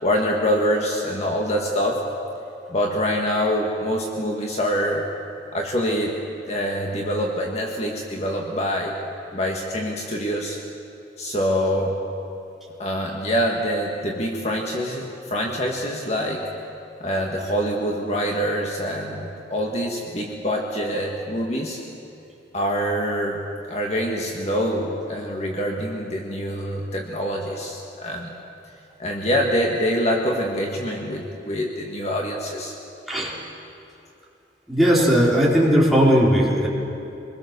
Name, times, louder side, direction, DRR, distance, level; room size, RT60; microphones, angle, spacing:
voice 1, 0.0-2.0 2.7-5.0 5.5-6.1 6.5-8.9 9.3-10.6 11.2-12.0 12.8-16.5 17.0-21.8 22.5-23.4 23.7-28.3 29.0-32.7, equal, 40° left, 0 dB, 1.9 m, -25 dB
voice 2, 34.7-36.7, equal, ahead, -6 dB, 4.3 m, -17 dB
26.0 x 21.0 x 6.8 m, 2.8 s
head